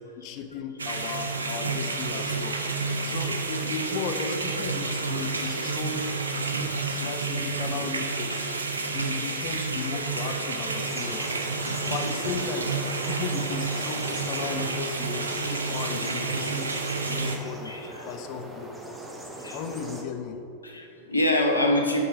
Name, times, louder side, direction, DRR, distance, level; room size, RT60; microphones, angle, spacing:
voice 1, 0.2-6.1 6.9-8.5 8.9-11.4 11.9-12.7 13.1-16.7 17.1-18.8 19.5-20.4, left 5 dB, 40° left, 7 dB, 0.5 m, -36 dB
sound 1, 0.8-17.4, right 3 dB, 75° right, 0.5 m, -30 dB
voice 2, 10.8-11.4 11.7-12.1 16.0-16.2 17.2-18.1 19.4-19.6 20.6-22.0, left 1 dB, 80° left, 2 dB, 0.8 m, -28 dB
sound 2, 10.9-20.0, right 1 dB, 10° right, 0.7 m, -40 dB
6.0 x 4.7 x 4.9 m, 2.7 s
figure-of-eight pair, 90°, 0 cm